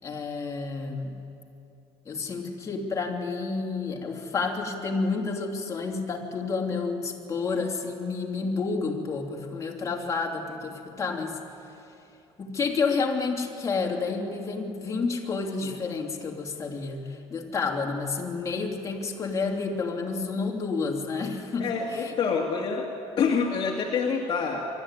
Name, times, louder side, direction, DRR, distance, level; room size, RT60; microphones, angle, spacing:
voice 1, 0.0-1.2 2.0-11.4 12.4-22.1, left 4 dB, 30° left, 0 dB, 2.9 m, -30 dB
voice 2, 21.6-24.7, left 5 dB, 45° left, -1 dB, 2.1 m, -27 dB
24.0 x 13.0 x 9.8 m, 2.7 s
cardioid pair, 120°, 11 cm